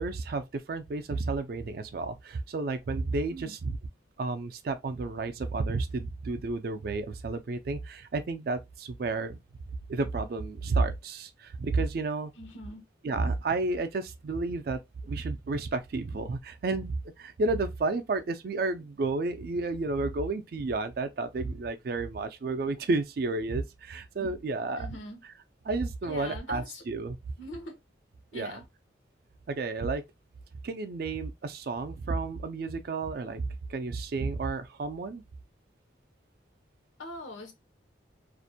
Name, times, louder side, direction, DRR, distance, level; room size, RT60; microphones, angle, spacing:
voice 1, 0.0-3.8 4.2-9.4 9.9-12.3 13.0-24.9 25.7-27.2 28.3-28.6 29.5-30.0 30.6-35.2, right 3 dB, 50° right, 0.3 m, -31 dB
voice 2, 12.3-12.9 24.2-24.3 24.8-25.2 26.0-26.8 27.4-27.8 28.3-28.7 37.0-37.5, left 1 dB, 85° left, 0.8 m, -42 dB
2.5 x 2.1 x 2.6 m
head